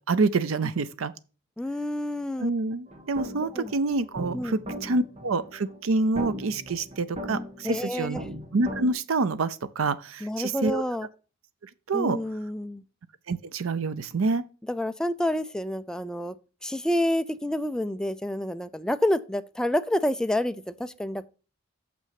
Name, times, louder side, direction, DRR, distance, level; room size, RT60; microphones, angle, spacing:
voice 1, 0.1-1.1 2.4-8.2 8.5-10.8 11.9-12.2 13.3-14.4, right 3 dB, 90° right, 0.6 m, -27 dB
voice 2, 1.6-2.5 3.4-3.7 4.3-4.6 7.6-8.3 10.2-11.1 11.9-12.8 14.7-16.4 16.6-21.3, left 1 dB, 5° left, 0.4 m, -28 dB
sound 1, 2.9-8.9, equal, 35° right, 1.2 m, -39 dB
6.8 x 6.0 x 5.8 m
head